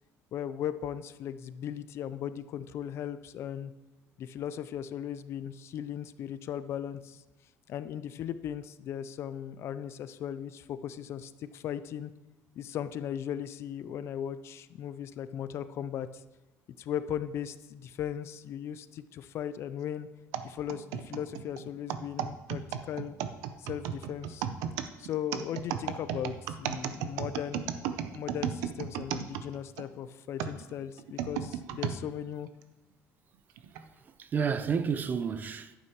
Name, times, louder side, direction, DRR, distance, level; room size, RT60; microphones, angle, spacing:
voice 1, 0.3-3.7 4.2-7.2 7.7-12.1 12.6-16.1 16.8-20.1 20.4-23.1 23.6-24.5 25.0-27.7 28.1-32.5, left 9 dB, 55° left, 0.4 m, -37 dB
sound 1, 20.3-29.9 30.4-32.0 32.6-32.7 33.6-33.8, right 9 dB, 90° right, 0.6 m, -35 dB
voice 2, 33.7-35.8, right 6 dB, 35° right, 0.5 m, -31 dB
11.0 x 9.0 x 3.0 m
cardioid pair, 125°, 5 cm